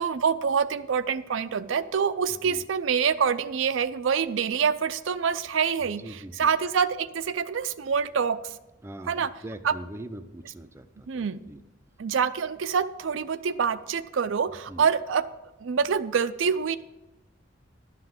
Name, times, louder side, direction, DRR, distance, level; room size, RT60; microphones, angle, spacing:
voice 1, 0.0-8.6 9.1-9.3 9.6-9.7 11.1-11.4 12.0-15.3 15.6-16.8, right 6 dB, 75° right, 12 dB, 0.5 m, -26 dB
voice 2, 6.0-6.5 8.8-11.6 14.7-14.9, right 1 dB, 15° right, 8 dB, 0.5 m, -42 dB
11.5 x 5.8 x 7.7 m, 1.0 s
head